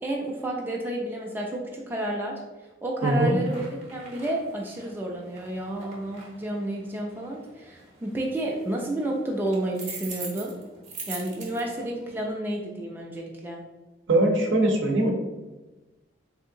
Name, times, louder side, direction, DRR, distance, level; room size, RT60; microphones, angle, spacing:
voice 1, 0.0-2.3 2.8-3.7 3.9-10.5 11.1-13.6, right 1 dB, 10° right, -1 dB, 0.3 m, -31 dB
voice 2, 3.0-3.4 14.1-15.1, right 1 dB, 80° right, 2 dB, 0.6 m, -21 dB
sound 1, 3.4-12.3, right 4 dB, 40° right, 0.7 m, -44 dB
3.5 x 2.7 x 2.6 m, 1.1 s
head